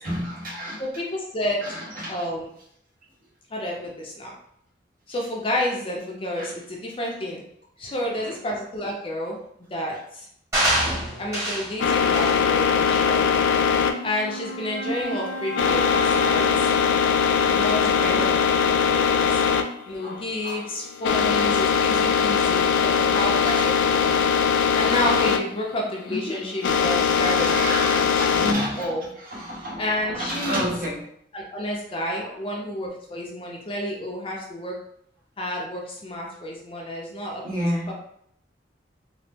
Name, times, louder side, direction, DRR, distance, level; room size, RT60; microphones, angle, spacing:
voice 1, 0.0-0.8 1.6-2.2 6.4-6.5 8.2-8.3 10.8-11.1 14.8-15.2 16.6-17.0 17.8-18.3 19.2-19.3 19.6-19.7 20.0-20.6 23.4-23.7 26.1-26.4 27.4-28.9 29.3-31.0 32.2-32.4 37.4-37.9, equal, 50° right, -5 dB, 1.0 m, -30 dB
voice 2, 0.8-1.6 2.1-2.5 3.5-4.3 5.1-7.4 7.8-10.3 11.2-13.4 14.0-16.7 17.5-19.4 19.9-24.2 24.7-29.1 29.8-30.7 31.3-34.8 35.4-37.9, left 1 dB, 30° left, -2 dB, 0.5 m, -30 dB
sound 1, 10.5-11.7 12.1-12.4 12.9-13.1, right 1 dB, 15° right, 1.2 m, -25 dB
sound 2, 11.8-28.5, left 6 dB, 80° left, 0.3 m, -21 dB
Wind instrument woodwind instrument, 13.5-18.4, equal, 70° right, 1.3 m, -35 dB
2.9 x 2.1 x 3.3 m, 0.70 s
head